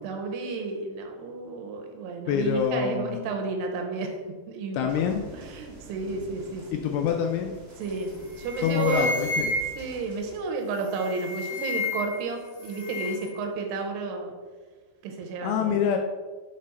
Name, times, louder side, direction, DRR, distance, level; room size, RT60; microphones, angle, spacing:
voice 1, 0.0-4.2 4.5-6.8 7.8-9.1 9.8-14.3 15.0-15.8, right 4 dB, 85° right, 3 dB, 2.9 m, -32 dB
voice 2, 2.3-3.2 4.7-5.2 6.7-7.6 8.6-9.5 15.4-16.0, left 8 dB, 85° left, 3 dB, 2.2 m, -26 dB
sound 1, 4.9-10.4, equal, 55° right, 0.6 m, -47 dB
sound 2, 7.8-8.0 8.3-10.0 10.8-12.3 12.5-13.3, left 2 dB, 55° left, 2.5 m, -31 dB
7.6 x 4.1 x 4.2 m, 1.4 s
omnidirectional pair, 4.8 m